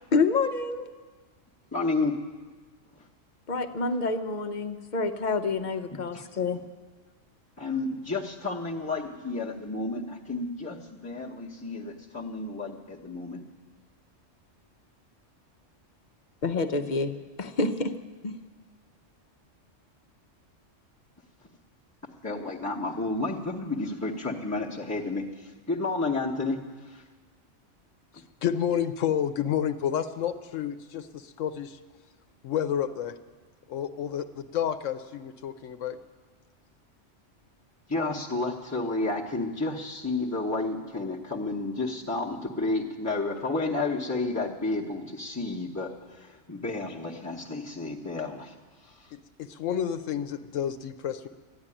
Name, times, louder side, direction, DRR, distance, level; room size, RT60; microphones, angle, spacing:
voice 1, 0.1-0.9 3.5-6.6 16.4-17.9 18.2-18.4, left 4 dB, 45° left, 9 dB, 0.8 m, -28 dB
voice 2, 1.7-2.1 2.9-3.0 6.1-6.3 7.6-13.4 22.2-27.0 37.9-48.5 48.8-49.1, left 3 dB, 15° left, -6 dB, 0.9 m, -31 dB
voice 3, 28.4-31.8 32.4-33.1 33.7-36.0 49.1-51.3, left 9 dB, 80° left, 9 dB, 1.0 m, -30 dB
13.5 x 10.5 x 9.8 m, 1.4 s
omnidirectional pair, 1.3 m